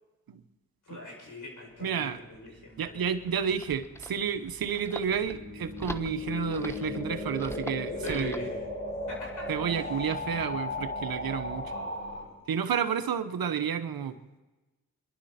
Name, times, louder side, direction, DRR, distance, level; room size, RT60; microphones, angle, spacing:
voice 1, 0.8-3.4 8.0-8.5 9.1-9.9 11.6-12.3, left 2 dB, 55° left, -2 dB, 7.4 m, -43 dB
voice 2, 1.8-2.2 2.8-8.3 9.5-11.7 12.5-14.1, right 7 dB, 75° right, 9 dB, 1.2 m, -31 dB
sound 1, 3.0-12.2, left 2 dB, 30° left, 4.9 m, -36 dB
sound 2, 3.4-8.5, left 1 dB, 5° left, 1.0 m, -43 dB
25.5 x 11.5 x 4.4 m, 1.1 s
supercardioid pair, 45°, 36 cm